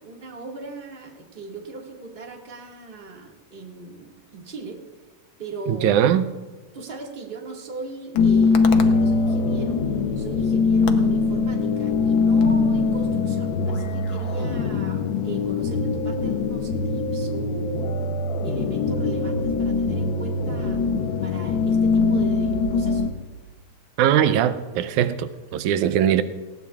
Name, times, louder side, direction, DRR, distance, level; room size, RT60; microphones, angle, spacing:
voice 1, 0.0-4.8 5.4-6.0 6.7-9.8 10.1-17.9 18.4-20.8 21.2-23.1, right 3 dB, 25° right, 0 dB, 1.5 m, -39 dB
voice 2, 5.7-6.3 24.0-26.2, right 10 dB, 90° right, 11 dB, 2.1 m, -20 dB
sound 1, 8.2-23.1, left 4 dB, 80° left, 1.1 m, -22 dB
19.5 x 17.5 x 2.4 m, 1.2 s
omnidirectional pair, 3.4 m